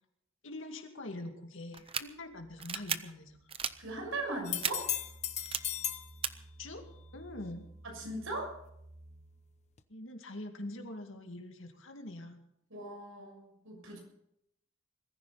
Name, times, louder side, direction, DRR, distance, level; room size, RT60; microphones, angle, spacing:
voice 1, 0.4-3.6 6.6-6.8 7.1-7.7 9.9-12.4, left 1 dB, 70° left, 4 dB, 2.4 m, -44 dB
sound 1, 1.7-2.0 2.6-3.0 3.5-3.7 4.6-4.7 5.4-5.6 6.2-6.3, right 7 dB, 30° right, 0.7 m, -33 dB
sound 2, 2.0-9.8, right 1 dB, 5° left, 2.6 m, -56 dB
voice 2, 3.8-4.9 7.8-8.6 12.7-14.0, right 2 dB, 80° right, 2 dB, 6.6 m, -39 dB
sound 3, 4.4-6.1 9.8-9.9, left 10 dB, 35° left, 0.8 m, -36 dB
21.5 x 14.5 x 4.2 m, 0.78 s
head